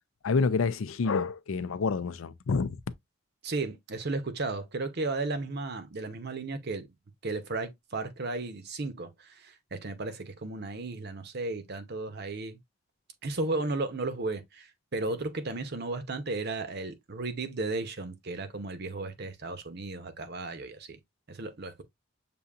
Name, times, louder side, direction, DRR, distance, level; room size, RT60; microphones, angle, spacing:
voice 1, 0.2-2.8, left 4 dB, 90° left, 0.5 m, -28 dB
voice 2, 3.4-6.9 7.2-12.6 13.2-21.0 21.3-21.8, right 3 dB, 55° right, 0.8 m, -34 dB
6.8 x 2.7 x 2.4 m
head